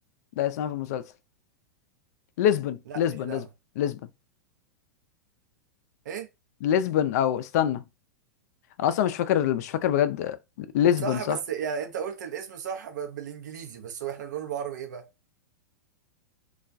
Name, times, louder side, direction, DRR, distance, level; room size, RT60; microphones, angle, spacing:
voice 1, 0.4-1.0 2.4-3.4 3.8-4.0 6.6-7.8 8.8-11.4, left 10 dB, 60° left, 0.4 m, -25 dB
voice 2, 2.9-3.5 6.0-6.3 11.0-15.1, right 7 dB, 75° right, 0.6 m, -34 dB
2.3 x 2.2 x 2.5 m
hypercardioid pair, 105°, 10 cm